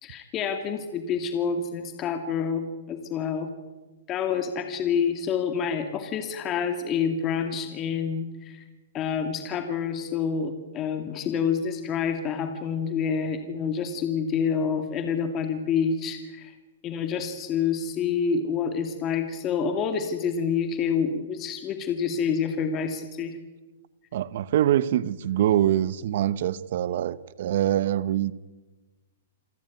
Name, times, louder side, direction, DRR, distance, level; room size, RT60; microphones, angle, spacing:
voice 1, 0.0-3.5 4.1-8.6 8.9-16.5 16.8-23.4, left 6 dB, 30° left, 6 dB, 2.3 m, -28 dB
voice 2, 24.1-28.3, right 12 dB, 60° right, 17 dB, 1.0 m, -24 dB
27.5 x 14.5 x 9.4 m, 1.2 s
hypercardioid pair, 135°, 0 cm